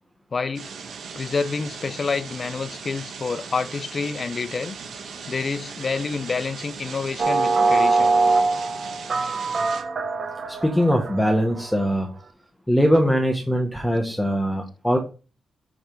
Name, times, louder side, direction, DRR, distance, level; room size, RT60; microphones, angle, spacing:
voice 1, 0.3-0.7 1.2-4.8 5.3-8.1, left 4 dB, 40° left, 0.5 m, -28 dB
sound 1, 0.5-9.8, right 5 dB, 75° right, 1.5 m, -38 dB
sound 2, 7.2-11.7, right 3 dB, 45° right, 0.9 m, -22 dB
voice 2, 10.5-12.1 12.7-15.0, equal, 5° left, 1.0 m, -21 dB
7.1 x 3.3 x 4.5 m
cardioid pair, 105°, 0 cm